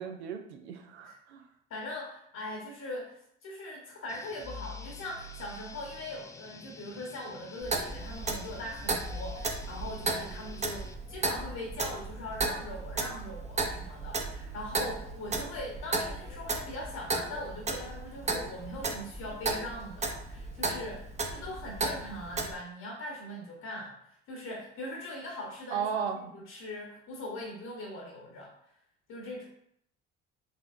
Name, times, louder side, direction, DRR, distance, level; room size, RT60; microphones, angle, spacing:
voice 1, 0.0-1.5 25.7-26.3, right 7 dB, 85° right, 5 dB, 0.5 m, -35 dB
voice 2, 1.7-26.0 26.3-28.5 29.1-29.4, left 1 dB, 55° left, -2 dB, 1.1 m, -41 dB
sound 1, 4.1-10.9, left 3 dB, 10° left, 0.3 m, -50 dB
sound 2, 4.4-15.7, right 2 dB, 45° right, 1.0 m, -49 dB
Clock, 7.6-22.5, right 3 dB, 20° right, 0.7 m, -35 dB
4.6 x 3.0 x 2.5 m, 0.71 s
hypercardioid pair, 60°, 32 cm